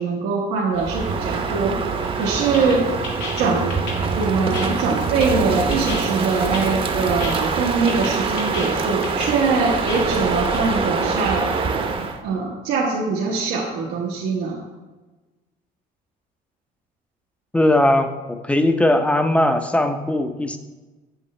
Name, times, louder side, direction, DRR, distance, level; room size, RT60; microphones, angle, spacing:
voice 1, 0.0-1.8 2.2-2.9 3.4-3.8 4.1-11.5 12.2-14.6, right 4 dB, 90° right, -3 dB, 1.1 m, -22 dB
Crow, 0.7-12.2, right 4 dB, 30° right, 0.8 m, -24 dB
sound 1, 2.0-10.6, left 3 dB, 90° left, 2.0 m, -35 dB
voice 2, 17.5-20.6, left 1 dB, 5° left, 7 dB, 0.6 m, -19 dB
7.9 x 7.2 x 3.2 m, 1.2 s
cardioid pair, 110°, 17 cm